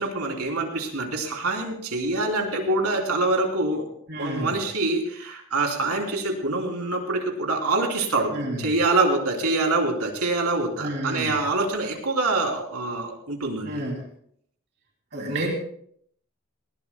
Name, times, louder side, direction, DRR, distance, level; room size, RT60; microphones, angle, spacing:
voice 1, 0.0-3.9 4.2-13.7, right 2 dB, 90° right, 1 dB, 3.5 m, -25 dB
voice 2, 4.1-4.5 8.3-8.6 10.8-11.3 13.6-14.0 15.1-15.5, right 1 dB, 50° right, -1 dB, 3.1 m, -29 dB
19.5 x 19.5 x 2.3 m, 0.66 s
head